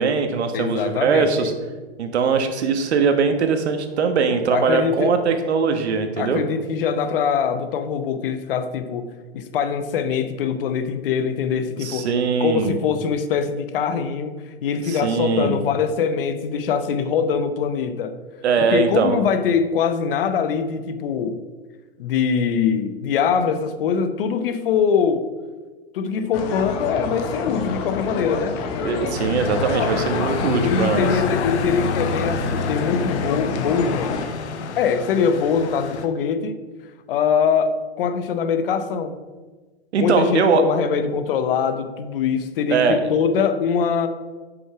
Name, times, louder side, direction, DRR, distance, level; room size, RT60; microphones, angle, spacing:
voice 1, 0.0-1.5 2.0-6.4 11.8-12.7 14.9-15.6 18.4-19.2 28.8-31.1 39.9-40.6 42.7-43.0, right 5 dB, 80° right, 7 dB, 1.4 m, -21 dB
voice 2, 0.5-1.5 4.5-5.1 6.2-12.1 12.4-14.3 14.6-18.2 18.7-21.4 22.0-25.3 25.9-28.6 30.6-34.2 34.8-36.6 37.1-39.1 40.0-44.1, left 6 dB, 55° left, 10 dB, 0.9 m, -23 dB
sound 1, 26.3-34.3, left 5 dB, 25° left, 0.6 m, -28 dB
sound 2, 29.1-36.1, left 5 dB, 85° left, 1.0 m, -28 dB
7.7 x 6.2 x 4.8 m, 1.3 s
hypercardioid pair, 155°, 33 cm